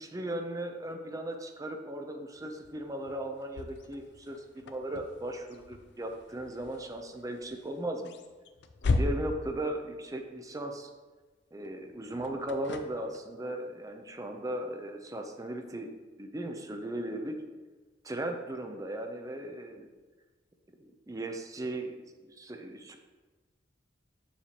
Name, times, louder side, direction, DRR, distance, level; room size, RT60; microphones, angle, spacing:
voice 1, 0.0-8.1 8.8-10.9 11.5-15.9 16.2-17.4 18.1-19.9 20.8-22.0 22.2-23.0, right 1 dB, 20° right, 5 dB, 0.6 m, -37 dB
sound 1, 2.3-10.6 11.6-13.4, left 2 dB, 65° left, 0.5 m, -37 dB
7.2 x 6.7 x 3.0 m, 1.3 s
head